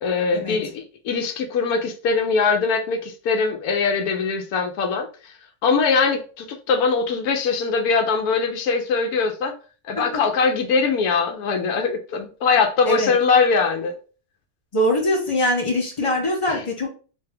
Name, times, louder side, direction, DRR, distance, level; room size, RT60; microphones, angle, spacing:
voice 1, 0.0-5.3 5.6-9.5 9.9-14.0 16.5-16.7, left 5 dB, 90° left, 1.1 m, -22 dB
voice 2, 14.7-16.9, equal, 25° left, 0.8 m, -22 dB
3.3 x 2.8 x 3.3 m
omnidirectional pair, 1.5 m